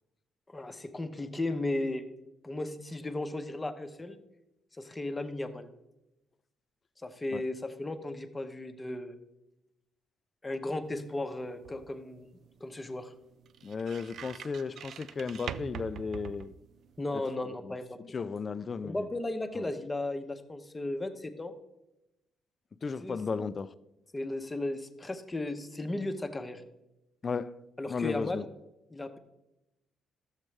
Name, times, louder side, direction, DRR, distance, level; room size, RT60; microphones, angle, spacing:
voice 1, 0.5-2.0 2.4-4.2 4.8-5.7 7.0-9.2 10.4-12.3 12.6-13.1 17.0-18.0 18.8-21.5 23.0-23.5 24.1-26.6 27.8-28.5 28.9-29.2, left 2 dB, 20° left, 0.8 m, -35 dB
sound 1, 10.9-17.1, right 8 dB, 65° right, 0.3 m, -45 dB
voice 2, 13.6-16.5 17.6-17.7 18.1-19.1 19.6-19.7 22.8-23.7 27.2-27.5 27.9-28.4, left 5 dB, 40° left, 0.4 m, -34 dB
12.0 x 7.3 x 3.3 m
cardioid pair, 90°, 0 cm